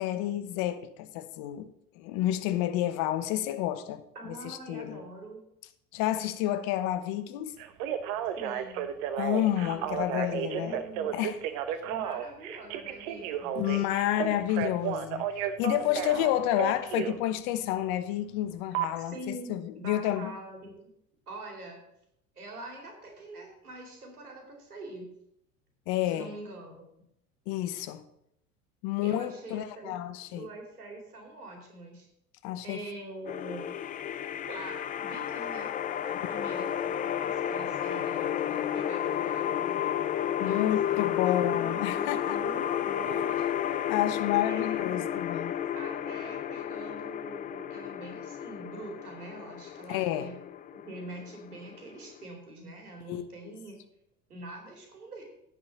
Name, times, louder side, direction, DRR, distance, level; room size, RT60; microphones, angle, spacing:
voice 1, 0.0-1.7 2.0-4.0 4.4-5.0 5.9-7.6 9.2-10.8 11.1-11.4 13.5-20.3 25.9-26.3 27.5-28.0 28.8-30.5 32.4-32.8 36.2-36.3 40.4-42.4 43.9-45.5 49.9-50.3 53.1-53.5, left 13 dB, 55° left, 1.0 m, -30 dB
voice 2, 4.1-5.4 8.3-8.9 9.5-11.1 11.8-13.9 19.0-20.7 21.3-21.8 22.3-25.1 26.0-26.9 29.0-32.1 32.6-33.7 34.4-35.8 36.0-39.8 40.4-43.7 44.4-44.9 45.7-50.4 50.8-53.8 54.3-55.2, right 2 dB, 90° right, 2.6 m, -44 dB
Telephone, 7.6-17.2 18.7-18.9, right 10 dB, 60° right, 1.1 m, -33 dB
sound 1, 33.3-52.2, left 10 dB, 20° left, 0.4 m, -32 dB
10.5 x 4.9 x 7.2 m
hypercardioid pair, 75°, 43 cm